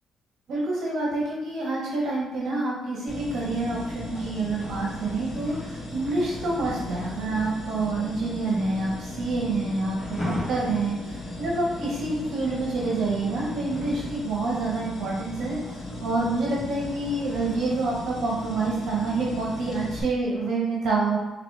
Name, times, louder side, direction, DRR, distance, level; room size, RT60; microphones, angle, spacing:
voice 1, 0.5-21.2, right 3 dB, 70° right, -4 dB, 0.9 m, -27 dB
sound 1, 3.1-20.0, left 1 dB, 35° left, 1.2 m, -36 dB
4.2 x 2.9 x 3.3 m, 1.1 s
cardioid pair, 90°, 0 cm